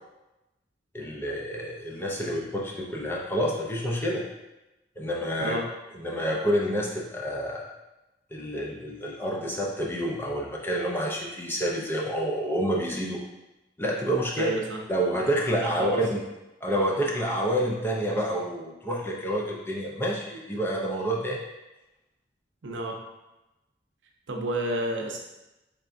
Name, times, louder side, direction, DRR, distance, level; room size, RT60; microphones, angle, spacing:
voice 1, 0.9-4.2 5.0-5.6 5.9-7.7 8.3-13.2 13.8-14.6 14.9-16.2 16.6-21.4, equal, 10° left, -3 dB, 0.5 m, -28 dB
voice 2, 14.4-14.8 15.6-16.0 22.6-23.0 24.3-25.3, right 2 dB, 85° right, 1 dB, 0.7 m, -30 dB
4.4 x 3.4 x 2.6 m, 0.99 s
head